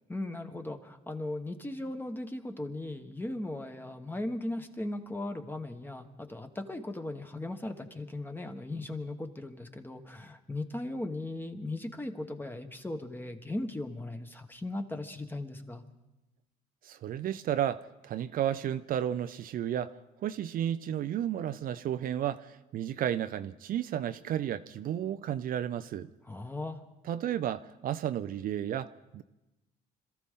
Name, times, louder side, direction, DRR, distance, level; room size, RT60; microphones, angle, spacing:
voice 1, 0.1-15.8 26.2-26.8, left 2 dB, 10° left, 1.3 m, -38 dB
voice 2, 16.8-19.9 20.2-26.1 27.1-29.2, right 10 dB, 55° right, 0.6 m, -32 dB
26.5 x 14.0 x 3.7 m
cardioid pair, 110°, 17 cm